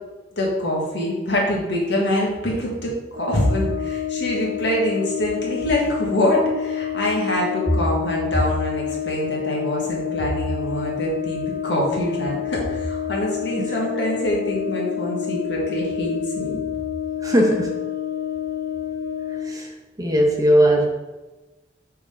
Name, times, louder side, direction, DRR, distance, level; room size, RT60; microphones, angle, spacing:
voice 1, 0.4-16.6, equal, 70° left, -3 dB, 1.8 m, -24 dB
Brass instrument, 3.1-19.5, left 9 dB, 45° right, 0.9 m, -28 dB
voice 2, 17.2-17.7 19.4-19.7 20.0-20.9, equal, 20° right, 0 dB, 1.0 m, -18 dB
6.7 x 3.7 x 5.0 m, 1.2 s
head